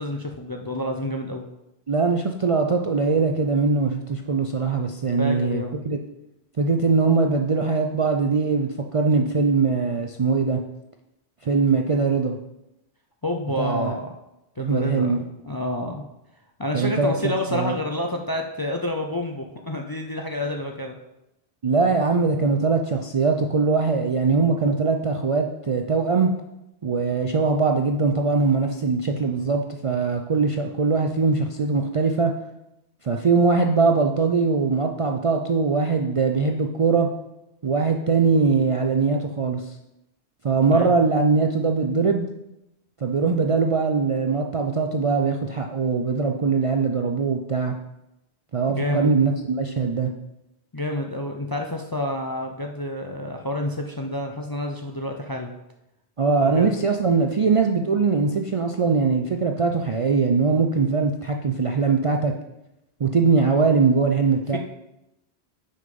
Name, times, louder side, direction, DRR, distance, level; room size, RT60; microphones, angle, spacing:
voice 1, 0.0-1.4 5.2-5.8 13.2-14.1 14.6-16.0 16.6-21.0 40.7-40.9 48.7-49.1 50.7-55.5 56.4-56.7 64.5-64.6, left 1 dB, 30° left, 2 dB, 0.4 m, -29 dB
voice 2, 1.9-6.0 6.6-10.6 11.4-12.4 13.6-14.0 14.6-15.2 16.7-17.7 21.6-26.3 26.8-32.3 33.0-37.1 37.6-39.8 40.4-42.3 43.0-47.7 48.5-50.1 56.2-62.3 63.0-64.6, right 4 dB, 45° right, 3 dB, 0.4 m, -21 dB
6.5 x 5.5 x 5.3 m, 0.90 s
omnidirectional pair, 1.1 m